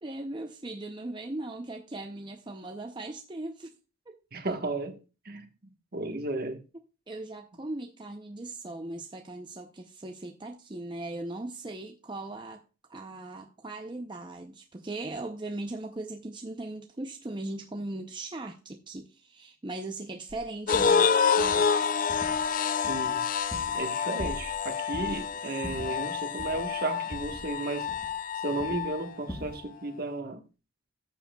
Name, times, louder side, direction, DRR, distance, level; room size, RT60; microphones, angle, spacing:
voice 1, 0.0-3.8 4.1-4.2 7.1-12.6 12.9-21.8, right 2 dB, 20° right, 0.6 m, -39 dB
voice 2, 4.3-5.0 5.2-5.5 5.9-6.6 22.9-23.3 23.7-28.0 28.3-30.4, right 2 dB, 45° right, 1.3 m, -34 dB
sound 1, 20.3-20.4 20.7-21.0 21.4-21.7 22.1-22.5 22.8-23.9 24.2-24.6 24.9-25.2 25.6-26.7 27.1-28.3 28.6-28.9 29.3-29.6, equal, 10° left, 1.3 m, -42 dB
sound 2, 20.7-29.1, left 6 dB, 40° left, 0.4 m, -28 dB
14.0 x 7.5 x 2.3 m
head